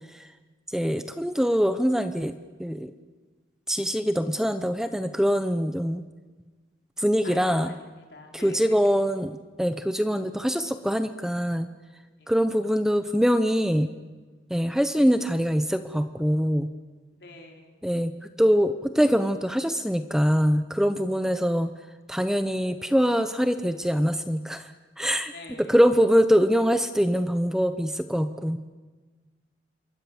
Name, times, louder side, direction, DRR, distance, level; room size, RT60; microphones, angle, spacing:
voice 1, 0.7-2.3 2.6-2.9 3.7-6.0 7.0-7.7 8.4-9.3 9.6-11.7 12.3-13.9 14.5-16.7 17.8-21.7 22.1-24.7 25.0-25.3 25.7-28.6, equal, 5° right, 9 dB, 0.8 m, -23 dB
voice 2, 7.2-9.0 12.2-12.3 17.2-17.8 25.3-25.8, left 2 dB, 70° left, 1 dB, 4.4 m, -45 dB
27.5 x 23.5 x 7.2 m, 1.3 s
head